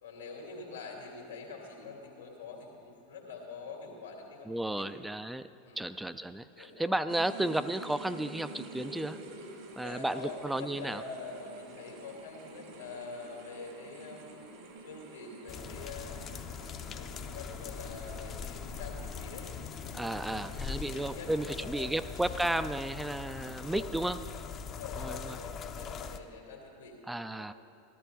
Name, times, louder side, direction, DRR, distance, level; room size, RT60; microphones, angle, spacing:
voice 1, 0.0-4.9 5.6-5.9 6.6-6.9 9.8-14.5 14.8-16.3 17.0-19.5 20.3-22.4 23.3-23.9 24.7-27.0 27.4-27.5, left 4 dB, 90° left, 0 dB, 2.3 m, -45 dB
voice 2, 4.5-5.5 5.8-9.2 9.8-11.0 19.9-24.2 25.0-25.4 27.1-27.5, right 1 dB, 5° right, 11 dB, 0.3 m, -33 dB
sound 1, 7.1-22.2, right 2 dB, 65° right, 1.6 m, -49 dB
sound 2, 15.5-26.2, left 6 dB, 35° left, 0.6 m, -41 dB
14.0 x 13.5 x 3.6 m, 2.6 s
hypercardioid pair, 90°, 0 cm